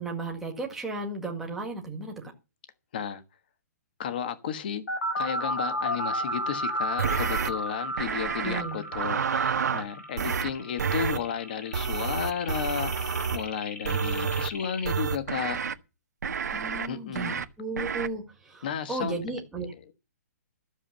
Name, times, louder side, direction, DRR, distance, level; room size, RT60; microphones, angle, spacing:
voice 1, 0.0-2.1 8.4-8.8 16.5-19.7, right 3 dB, 5° right, 1.9 m, -34 dB
voice 2, 4.0-4.8 5.2-15.6 16.9-17.4 18.6-19.2 19.7-19.9, left 8 dB, 35° left, 1.3 m, -33 dB
sound 1, 4.9-14.9, equal, 65° left, 3.8 m, -34 dB
sound 2, 7.0-7.5 8.0-8.6 8.9-9.8 10.2-10.5 10.8-11.2 11.7-13.4 13.8-14.5 14.8-15.7 16.2-16.9 17.2-17.4 17.8-18.1, right 6 dB, 85° right, 1.4 m, -29 dB
13.5 x 7.3 x 6.8 m
hypercardioid pair, 180°, 9 cm